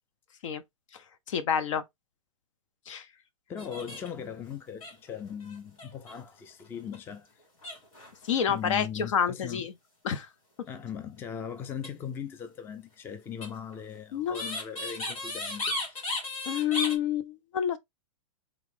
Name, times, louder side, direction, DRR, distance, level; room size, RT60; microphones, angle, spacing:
voice 1, 1.3-1.8 2.9-3.1 8.2-9.7 10.0-10.3 14.1-14.4 16.5-17.8, left 8 dB, 65° left, 0.8 m, -28 dB
voice 2, 3.5-7.4 8.5-9.6 10.6-16.0, left 8 dB, 10° left, 0.4 m, -39 dB
sound 1, 3.6-4.2 4.5-4.6 4.8-6.2 6.7-7.0 7.6-8.4 11.7-11.9 13.4-16.9, left 2 dB, 85° left, 3.0 m, -35 dB
3.8 x 3.1 x 3.4 m
hypercardioid pair, 140°, 17 cm